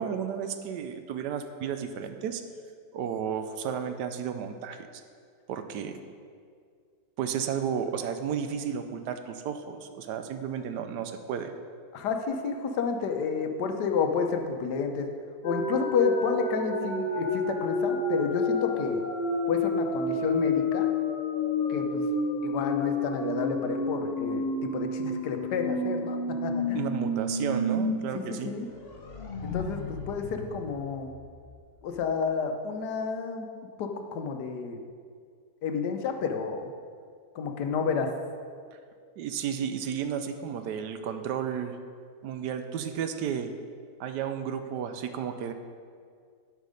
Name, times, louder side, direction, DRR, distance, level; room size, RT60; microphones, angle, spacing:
voice 1, 0.0-2.4 2.9-4.8 5.5-6.0 7.2-11.5 26.7-28.5 39.2-41.8 42.2-43.5 44.0-45.5, right 8 dB, 85° right, 8 dB, 1.3 m, -33 dB
voice 2, 11.9-15.0 15.4-19.0 19.5-20.9 21.7-22.0 22.4-26.8 28.1-28.7 29.4-31.1 31.8-33.5 33.8-34.8 35.6-36.7 37.3-38.1, left 5 dB, 80° left, 5 dB, 1.4 m, -30 dB
sound 1, 15.4-27.9 28.3-28.4 28.7-31.4, left 2 dB, 45° left, 0.9 m, -30 dB
11.5 x 5.3 x 5.1 m, 2.1 s
omnidirectional pair, 1.8 m